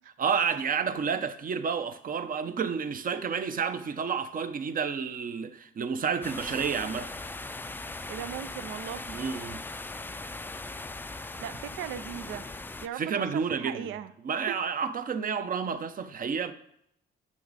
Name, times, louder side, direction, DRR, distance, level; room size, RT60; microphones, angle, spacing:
voice 1, 0.2-7.1 9.1-9.6 12.9-13.9 14.2-16.5, right 6 dB, 45° right, 0.7 m, -30 dB
sound 1, 6.2-12.9, left 2 dB, 10° left, 0.4 m, -39 dB
voice 2, 8.1-9.2 11.4-12.4 12.8-14.1 14.5-14.6, right 10 dB, 80° right, 0.5 m, -38 dB
10.0 x 6.3 x 4.0 m
cardioid pair, 90°, 20 cm